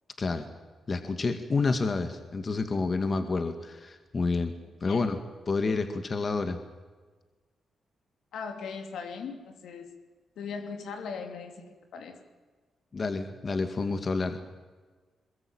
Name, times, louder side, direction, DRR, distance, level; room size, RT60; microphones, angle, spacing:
voice 1, 0.9-4.5 4.8-5.2 5.5-6.6 12.9-14.4, left 3 dB, 45° left, 7 dB, 2.2 m, -29 dB
voice 2, 8.3-9.9 10.4-12.2, left 5 dB, 80° left, 5 dB, 3.1 m, -39 dB
22.5 x 21.5 x 9.0 m, 1.4 s
supercardioid pair, 60°, 0 cm